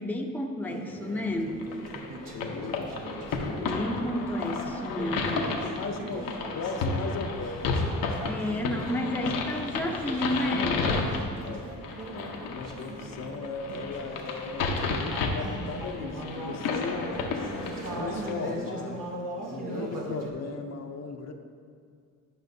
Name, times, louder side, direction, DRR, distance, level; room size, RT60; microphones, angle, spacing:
voice 1, 0.0-1.6 3.5-5.6 8.2-11.0, left 1 dB, 5° left, 2 dB, 0.6 m, -31 dB
Conversation / Chatter, 0.7-20.3, right 1 dB, 75° right, 1.1 m, -40 dB
sound 1, 1.6-18.3, left 4 dB, 90° left, 0.9 m, -32 dB
voice 2, 2.3-3.0 3.4-4.0 5.3-7.6 8.4-8.8 11.4-11.7 12.1-17.1 17.9-19.1 19.5-21.3, left 4 dB, 55° left, 4 dB, 0.6 m, -37 dB
11.0 x 5.6 x 2.7 m, 2.2 s
cardioid pair, 95°, 33 cm